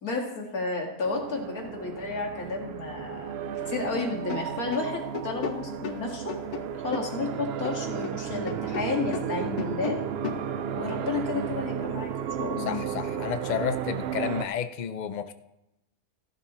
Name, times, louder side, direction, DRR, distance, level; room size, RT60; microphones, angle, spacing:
voice 1, 0.0-3.3 3.7-6.4 6.8-10.0 10.7-12.1 12.4-12.8, left 3 dB, 75° left, 0 dB, 2.5 m, -32 dB
sound 1, 1.0-14.4, right 8 dB, 70° right, 0.6 m, -33 dB
sound 2, 4.2-8.2 8.5-10.5, left 7 dB, 90° left, 1.3 m, -36 dB
voice 2, 12.6-15.3, left 8 dB, 55° left, 10 dB, 0.4 m, -31 dB
15.0 x 11.0 x 3.1 m, 0.90 s
omnidirectional pair, 1.6 m